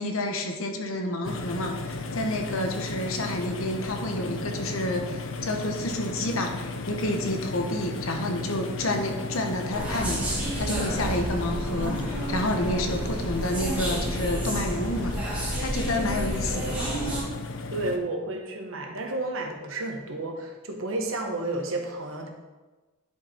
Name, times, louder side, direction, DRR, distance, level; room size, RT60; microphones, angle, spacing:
voice 1, 0.0-16.9, left 1 dB, 85° left, 4 dB, 1.1 m, -30 dB
sound 1, 1.2-18.0, left 3 dB, 65° left, 0.7 m, -35 dB
sound 2, 9.7-17.2, right 1 dB, 5° right, 1.9 m, -30 dB
voice 2, 17.7-22.3, right 2 dB, 80° right, 3 dB, 1.3 m, -31 dB
10.5 x 4.9 x 4.4 m, 1.2 s
head